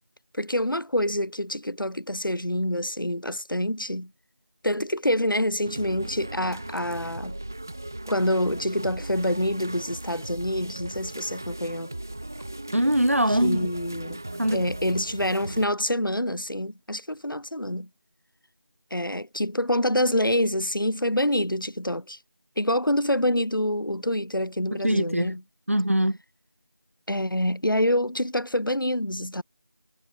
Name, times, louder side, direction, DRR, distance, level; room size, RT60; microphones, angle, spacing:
voice 1, 0.3-4.1 4.6-7.4 8.1-11.9 13.3-14.2 14.5-17.9 18.9-22.2 22.6-25.4 27.1-29.4, left 1 dB, 75° left, 2.9 m, -26 dB
sound 1, 5.6-15.7, right 1 dB, 10° right, 3.0 m, -38 dB
voice 2, 12.7-13.7 14.4-14.6 24.7-25.3 25.7-26.2, right 1 dB, 40° right, 5.4 m, -22 dB
figure-of-eight pair, 180°, 11 cm